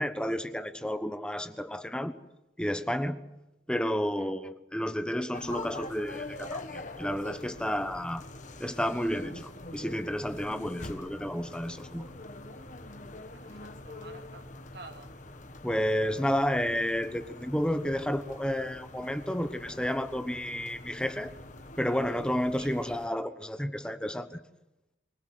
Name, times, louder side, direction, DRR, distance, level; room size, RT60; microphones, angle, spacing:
voice 1, 0.0-2.1 2.6-3.2 3.7-8.3 8.6-12.1 15.6-21.3 21.8-24.4, equal, 5° left, 9 dB, 1.1 m, -31 dB
sound 1, 5.3-23.1, left 2 dB, 40° left, 1.7 m, -44 dB
voice 2, 13.3-15.1 22.5-22.7, right 3 dB, 60° right, 6 dB, 2.3 m, -50 dB
25.0 x 18.0 x 7.9 m, 0.94 s
head